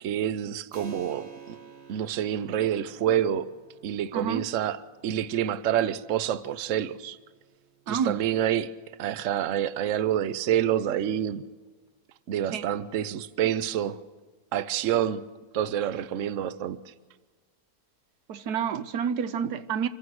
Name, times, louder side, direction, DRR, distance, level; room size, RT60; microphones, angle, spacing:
voice 1, 0.0-1.6 1.9-3.5 3.8-7.2 7.9-8.7 9.0-11.4 12.3-14.0 14.5-15.2 15.5-16.8, right 10 dB, 60° right, 1.0 m, -27 dB
Keyboard (musical), 0.7-10.9, right 6 dB, 45° right, 2.4 m, -52 dB
voice 2, 4.1-4.5 7.9-8.2 12.5-12.7 18.3-19.9, right 7 dB, 85° right, 1.4 m, -29 dB
26.5 x 15.5 x 6.5 m
omnidirectional pair, 1.6 m